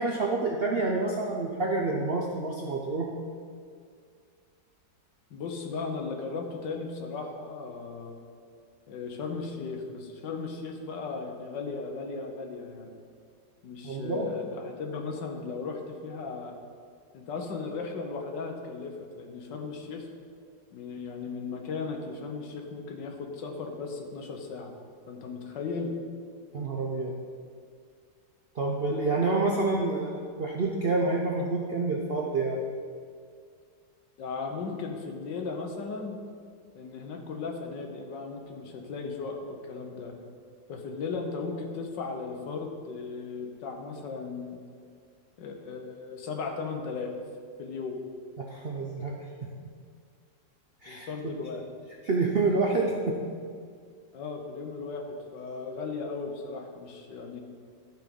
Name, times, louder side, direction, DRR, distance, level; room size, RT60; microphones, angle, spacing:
voice 1, 0.0-3.1 13.8-14.3 26.5-27.2 28.6-32.6 48.4-49.1 50.8-51.1 52.0-53.2, right 3 dB, 60° right, 0 dB, 0.6 m, -28 dB
voice 2, 5.3-8.2 8.9-12.9 13.6-16.6 17.1-20.1 20.7-24.7 25.1-25.9 34.2-36.2 36.8-40.1 40.7-44.6 45.4-47.1 47.6-48.0 50.9-51.6 54.1-57.4, left 4 dB, 75° left, 3 dB, 1.6 m, -36 dB
13.0 x 4.6 x 5.4 m, 2.1 s
omnidirectional pair, 2.0 m